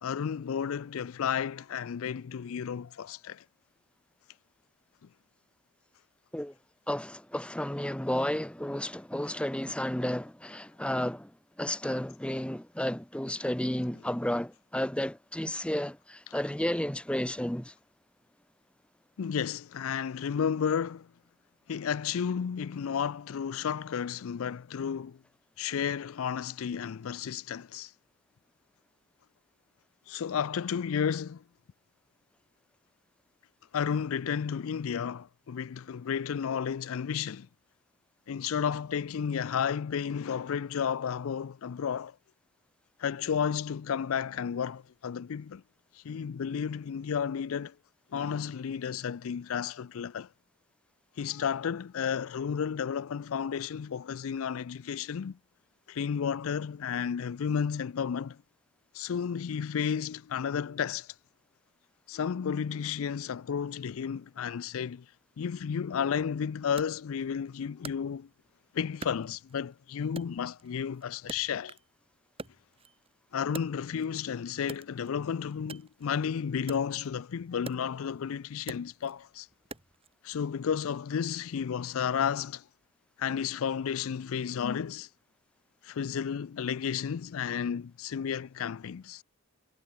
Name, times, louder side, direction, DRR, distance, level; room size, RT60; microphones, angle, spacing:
voice 1, 0.0-3.4 19.2-21.1 21.7-25.2 25.6-27.9 30.1-31.4 33.7-37.5 38.3-42.2 43.0-45.6 45.9-47.7 48.1-50.3 51.2-55.4 55.9-58.4 58.9-61.1 62.1-65.1 65.4-68.3 68.7-71.8 73.3-79.5 80.2-82.6 83.2-85.1 85.8-89.2, left 7 dB, 70° left, 0.4 m, -32 dB
voice 2, 6.9-17.7, left 1 dB, 5° left, 0.7 m, -32 dB
Wood, 66.8-68.6 69.0-69.8 70.2-72.0 72.3-74.2 74.6-80.1, right 3 dB, 25° right, 2.4 m, -47 dB
head